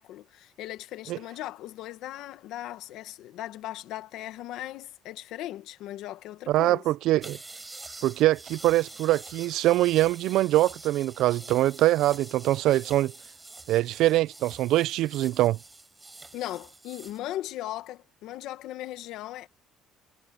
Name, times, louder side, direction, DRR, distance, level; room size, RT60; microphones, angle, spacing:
voice 1, 0.0-6.8 16.3-19.5, left 14 dB, 70° left, 1.4 m, -38 dB
voice 2, 6.5-7.4 8.0-13.1 13.7-15.6, right 15 dB, 65° right, 0.3 m, -23 dB
sound 1, 7.2-17.2, right 2 dB, 10° right, 4.7 m, -46 dB
cardioid pair, 160°, 0 cm